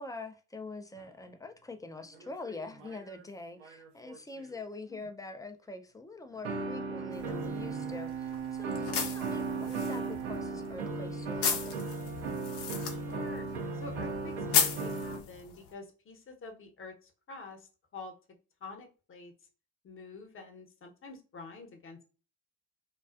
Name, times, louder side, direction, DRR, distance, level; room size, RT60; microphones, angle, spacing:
voice 1, 0.0-11.9, left 3 dB, 10° left, 0.3 m, -44 dB
sound 1, 1.0-1.1 2.1-3.2 3.6-4.6 6.4-8.0 8.6-15.2, right 2 dB, 90° right, 0.5 m, -38 dB
Bowed string instrument, 6.3-11.7, right 9 dB, 40° right, 0.5 m, -40 dB
sound 2, 7.1-15.7, left 7 dB, 75° left, 0.6 m, -36 dB
voice 2, 12.9-13.5 13.7-18.1 18.6-19.3 19.8-22.0, left 3 dB, 35° left, 0.8 m, -47 dB
2.3 x 2.3 x 2.4 m
hypercardioid pair, 60°, 35 cm